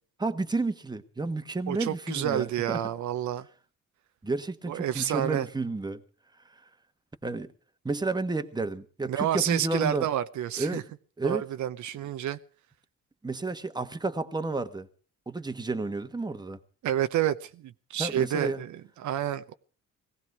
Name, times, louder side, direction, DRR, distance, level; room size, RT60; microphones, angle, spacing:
voice 1, 0.2-2.8 4.2-6.0 7.2-7.5 7.8-10.1 10.6-10.9 11.2-11.5 13.2-14.9 15.3-16.6 18.0-18.6, right 3 dB, 15° right, 1.3 m, -31 dB
voice 2, 1.7-3.5 4.7-5.5 9.1-10.8 11.2-12.4 16.8-19.5, right 11 dB, 70° right, 0.8 m, -29 dB
18.0 x 15.5 x 4.7 m
cardioid pair, 90°, 30 cm